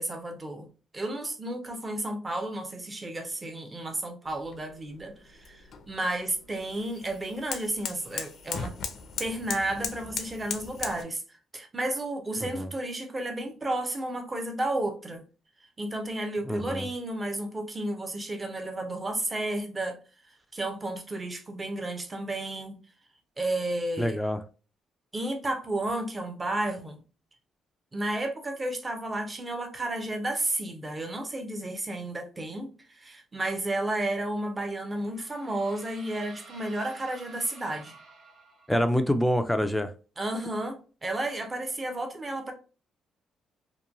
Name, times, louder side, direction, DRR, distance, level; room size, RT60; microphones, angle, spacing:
voice 1, 0.0-8.7 9.2-11.2 11.5-15.2 15.8-20.0 20.5-22.8 23.4-24.2 25.1-27.0 27.9-38.0 40.2-42.5, right 1 dB, 25° right, 0.7 m, -32 dB
sound 1, 4.2-11.0, left 5 dB, 60° left, 0.5 m, -39 dB
voice 2, 16.5-16.9 24.0-24.4 38.7-39.9, equal, 5° left, 0.4 m, -26 dB
sound 2, 34.7-39.0, right 3 dB, 75° right, 1.1 m, -51 dB
2.9 x 2.2 x 2.5 m
cardioid pair, 90°, 0 cm